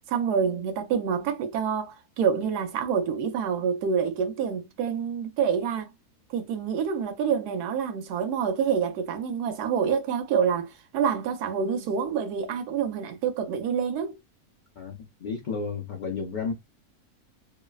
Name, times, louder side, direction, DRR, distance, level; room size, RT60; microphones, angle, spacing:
voice 1, 0.1-5.9 6.3-14.2, right 7 dB, 90° right, 1.1 m, -27 dB
voice 2, 14.8-16.5, left 5 dB, 60° left, 0.5 m, -32 dB
3.1 x 2.0 x 2.2 m
omnidirectional pair, 1.6 m